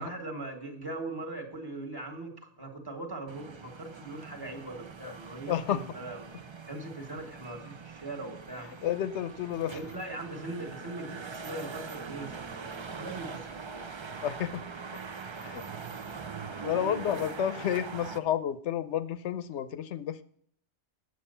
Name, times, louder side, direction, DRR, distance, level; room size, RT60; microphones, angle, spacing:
voice 1, 0.0-6.3 6.7-8.7 9.6-13.9 16.9-17.3, right 2 dB, 20° right, 3 dB, 1.6 m, -40 dB
sound 1, 3.3-18.2, right 5 dB, 40° right, 0.4 m, -42 dB
voice 2, 5.5-5.8 8.8-9.8 14.2-14.6 15.4-15.6 16.6-20.2, left 10 dB, 75° left, 13 dB, 1.0 m, -31 dB
8.9 x 7.9 x 5.5 m, 0.62 s
omnidirectional pair, 1.2 m